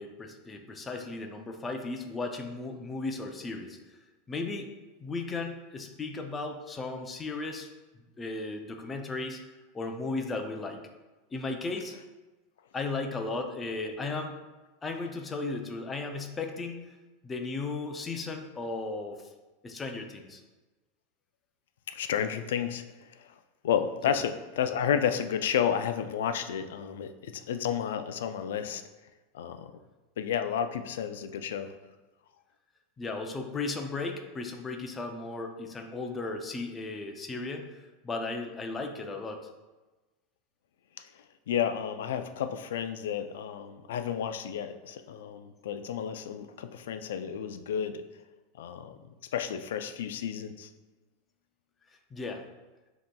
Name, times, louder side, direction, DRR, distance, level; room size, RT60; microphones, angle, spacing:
voice 1, 0.0-3.8 4.3-4.7 5.0-7.7 8.2-9.4 9.7-10.8 11.3-12.0 12.7-14.4 14.8-16.9 17.2-19.2 19.6-20.4 24.0-24.2 33.0-39.4 52.1-52.4, left 3 dB, 15° left, 4 dB, 0.4 m, -35 dB
voice 2, 21.9-23.3 23.6-28.8 29.3-29.7 30.2-31.7 41.0-41.1 41.5-48.1 48.6-49.0 49.3-50.7, left 8 dB, 90° left, 9 dB, 0.3 m, -31 dB
7.4 x 2.8 x 2.2 m, 1.2 s
supercardioid pair, 160°, 0 cm